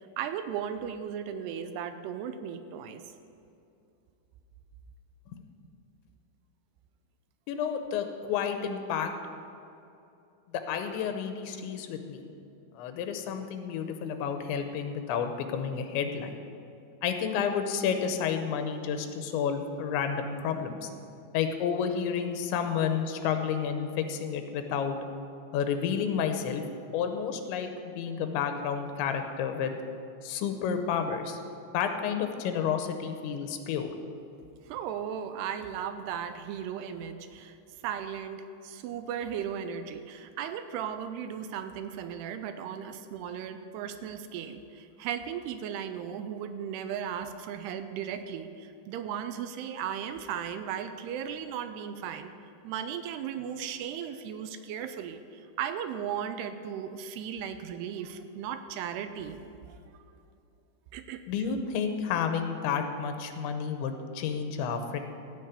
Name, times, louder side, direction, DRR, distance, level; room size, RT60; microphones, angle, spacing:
voice 1, 0.0-3.0 34.7-37.6 37.8-52.3 52.6-59.4 59.7-59.8 60.9-61.6, right 8 dB, 80° right, 9 dB, 2.5 m, -36 dB
voice 2, 7.5-9.1 10.5-12.3 12.7-16.3 17.0-20.9 21.3-25.0 25.5-26.6 26.9-29.7 30.2-31.4 31.7-33.9 61.3-65.0, left 7 dB, 90° left, 6 dB, 3.2 m, -30 dB
15.5 x 6.3 x 8.2 m, 2.6 s
omnidirectional pair, 5.1 m